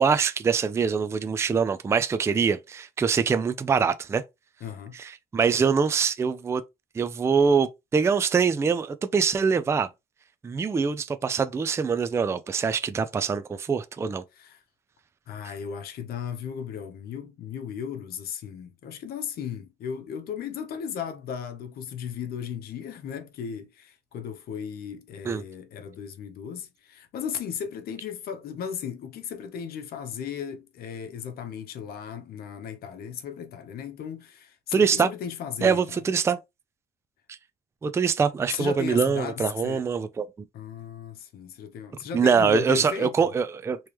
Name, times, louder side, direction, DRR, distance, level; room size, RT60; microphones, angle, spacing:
voice 1, 0.0-4.2 5.0-6.6 6.9-9.9 10.4-14.2 25.3-25.4 34.7-35.1 35.6-36.4 37.8-40.3 42.1-43.8, right 6 dB, 15° right, 0.3 m, -24 dB
voice 2, 4.6-5.0 14.3-14.6 15.3-36.0 38.5-39.8 40.5-43.3, left 7 dB, 65° left, 0.9 m, -36 dB
3.3 x 3.0 x 3.0 m
cardioid pair, 110°, 17 cm